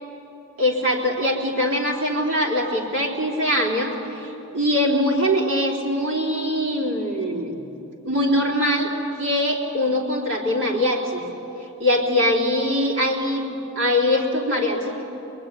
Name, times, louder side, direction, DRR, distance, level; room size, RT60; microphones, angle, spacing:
voice 1, 0.6-7.6 8.0-11.3 11.8-15.0, left 1 dB, 60° right, -1 dB, 3.9 m, -22 dB
23.5 x 21.5 x 10.0 m, 2.9 s
head